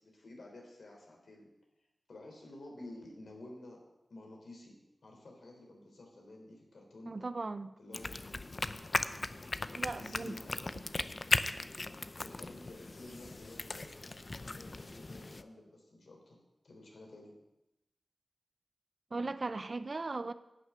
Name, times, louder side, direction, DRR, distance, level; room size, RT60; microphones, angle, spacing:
voice 1, 0.0-1.5 2.1-3.8 4.1-7.1 7.8-8.1 9.8-10.7 12.2-13.9 14.4-16.4 16.6-17.3, left 2 dB, 75° left, 0 dB, 3.6 m, -51 dB
voice 2, 7.1-7.7 9.7-10.4 19.1-20.3, right 3 dB, 50° right, 13 dB, 0.6 m, -38 dB
sound 1, 7.9-15.4, left 2 dB, 40° left, 0.6 m, -37 dB
11.0 x 6.4 x 9.0 m, 0.92 s
wide cardioid pair, 75°, 0 cm